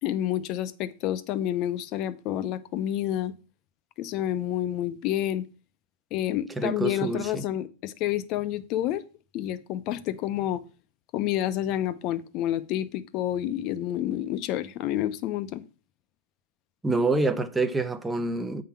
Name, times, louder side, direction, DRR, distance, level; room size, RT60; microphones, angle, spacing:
voice 1, 0.0-3.3 4.0-5.5 6.1-9.0 9.3-10.6 11.1-15.6, left 12 dB, 35° left, 0.7 m, -29 dB
voice 2, 6.6-7.4 16.8-18.6, right 2 dB, 5° right, 0.6 m, -26 dB
8.5 x 3.8 x 6.9 m
supercardioid pair, 160°, 0 cm